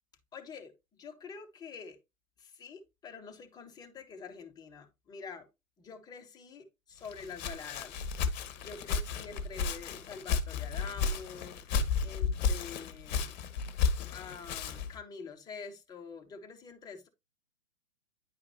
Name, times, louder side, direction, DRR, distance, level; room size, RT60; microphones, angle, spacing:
voice 1, 0.3-2.0 2.4-5.5 5.8-8.1 8.6-11.7 12.0-13.4 14.1-17.1, left 5 dB, 10° left, 0.9 m, -46 dB
Walk footsteps, 7.0-15.0, left 5 dB, 35° left, 1.0 m, -33 dB
10.0 x 4.9 x 2.7 m
figure-of-eight pair, 120°, 40 cm